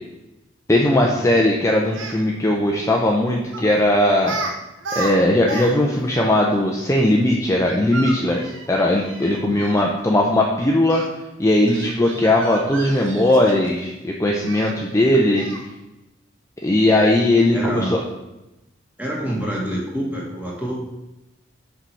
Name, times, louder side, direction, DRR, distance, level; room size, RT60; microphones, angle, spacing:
voice 1, 0.7-4.4 5.0-11.0 11.4-15.5 16.6-18.0, left 1 dB, 15° left, -1 dB, 0.6 m, -18 dB
Speech, 1.8-2.2 3.5-3.7 4.2-4.5 4.8-5.7 6.0-6.1 7.6-9.8 10.9-11.1 11.7-13.8 14.5-14.7 15.4-15.7, right 3 dB, 80° right, 1.0 m, -32 dB
voice 2, 17.5-17.9 19.0-20.7, equal, 10° right, -4 dB, 2.1 m, -27 dB
6.5 x 4.7 x 5.6 m, 0.96 s
head